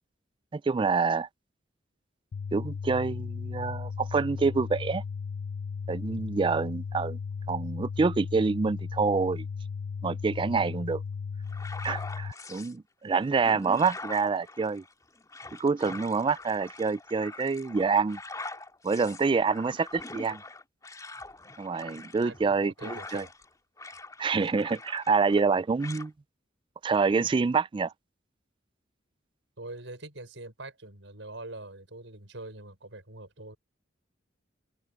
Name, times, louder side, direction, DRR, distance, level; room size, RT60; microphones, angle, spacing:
voice 1, 0.5-1.3 2.5-5.0 5.9-7.2 7.5-9.5 10.0-11.0 11.8-14.8 15.6-18.2 18.8-20.4 21.6-23.3 24.2-26.1 26.8-27.9, right 4 dB, 25° right, 0.3 m, -27 dB
sound 1, 2.3-12.3, left 5 dB, 85° left, 0.5 m, -36 dB
Watery Breath, 11.5-12.7 13.2-23.5 23.8-25.5 25.8-26.1, left 2 dB, 20° left, 2.4 m, -44 dB
voice 2, 22.2-23.3 29.6-33.6, right 2 dB, 80° right, 5.8 m, -43 dB
head